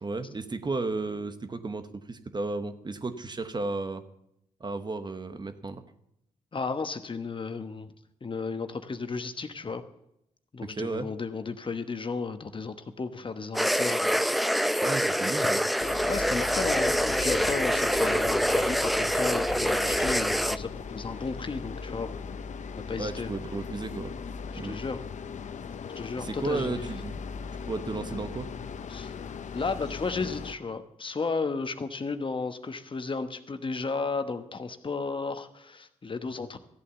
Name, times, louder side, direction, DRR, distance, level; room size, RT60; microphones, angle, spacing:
voice 1, 0.0-4.0 4.6-5.8 10.6-11.1 14.8-15.6 23.0-24.1 24.6-24.8 26.2-27.2 27.6-28.5, right 3 dB, 30° right, 10 dB, 1.0 m, -33 dB
voice 2, 6.5-7.9 8.2-9.8 10.5-14.2 16.1-22.2 22.9-23.3 24.6-25.0 25.9-26.9 28.9-29.1 29.5-36.6, left 4 dB, 35° left, 9 dB, 1.1 m, -34 dB
sound 1, 13.5-20.6, equal, ahead, 0.5 m, -26 dB
sound 2, 15.8-30.6, left 5 dB, 60° left, 0.7 m, -38 dB
14.0 x 8.4 x 6.9 m, 0.79 s
supercardioid pair, 60°, 14 cm